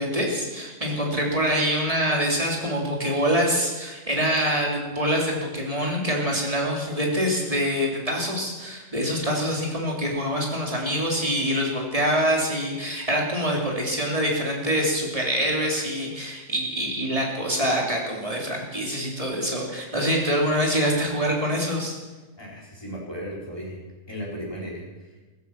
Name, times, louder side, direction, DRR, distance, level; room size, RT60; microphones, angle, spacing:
voice 1, 0.0-22.0, equal, 30° right, -1 dB, 3.5 m, -25 dB
voice 2, 22.4-23.8 24.1-25.2, equal, 20° left, -4 dB, 4.7 m, -36 dB
16.0 x 14.5 x 6.0 m, 1.2 s
omnidirectional pair, 1.2 m